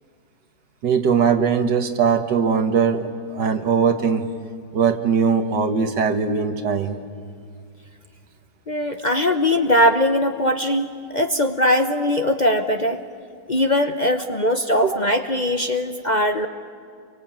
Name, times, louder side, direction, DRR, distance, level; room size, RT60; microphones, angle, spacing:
voice 1, 0.8-4.3 4.7-7.0 14.8-15.0, right 6 dB, 80° right, 7 dB, 2.1 m, -20 dB
voice 2, 8.7-13.0 13.5-16.5, left 1 dB, 35° left, 5 dB, 0.9 m, -20 dB
28.5 x 23.5 x 8.8 m, 2.2 s
omnidirectional pair, 1.9 m